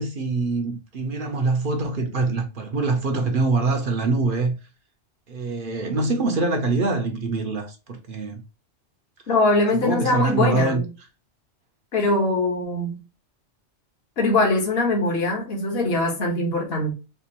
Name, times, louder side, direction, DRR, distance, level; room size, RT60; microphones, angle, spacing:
voice 1, 0.0-4.6 5.3-8.4 9.8-10.8, right 3 dB, 55° right, 0.8 m, -24 dB
voice 2, 9.3-10.9 11.9-13.0 14.2-16.9, left 2 dB, 55° left, 1.3 m, -22 dB
4.4 x 2.5 x 2.9 m
omnidirectional pair, 1.2 m